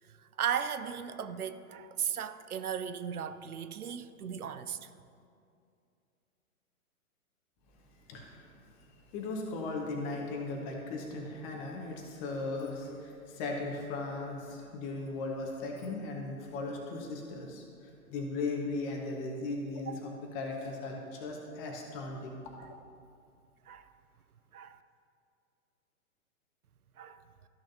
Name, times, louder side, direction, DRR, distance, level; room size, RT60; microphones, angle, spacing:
voice 1, 0.4-4.9 23.7-23.9 24.5-24.8 27.0-27.2, right 8 dB, 75° right, 0.6 m, -36 dB
voice 2, 8.1-22.4, left 3 dB, 30° left, 1.4 m, -38 dB
13.5 x 6.4 x 2.8 m
figure-of-eight pair, 120°, 44 cm